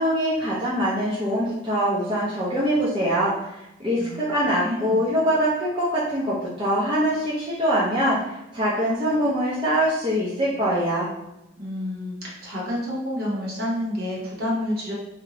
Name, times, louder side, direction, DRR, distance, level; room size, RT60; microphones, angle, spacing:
voice 1, 0.0-11.1, equal, 25° right, -8 dB, 0.5 m, -23 dB
voice 2, 4.6-5.1 11.6-14.9, left 1 dB, 50° right, -5 dB, 0.9 m, -29 dB
2.6 x 2.1 x 2.8 m, 0.89 s
head